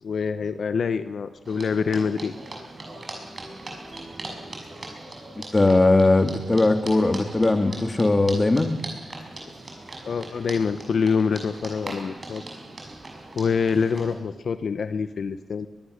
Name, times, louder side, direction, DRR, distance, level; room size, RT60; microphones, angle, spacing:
voice 1, 0.0-2.3 3.1-3.2 10.0-12.4 13.4-15.7, left 5 dB, 70° left, 11 dB, 1.0 m, -25 dB
sound 1, 1.4-14.1, right 2 dB, 40° right, 5.9 m, -40 dB
voice 2, 5.4-8.8, left 2 dB, 25° left, 7 dB, 2.0 m, -19 dB
22.5 x 22.0 x 6.6 m, 1.1 s
wide cardioid pair, 95°, 0 cm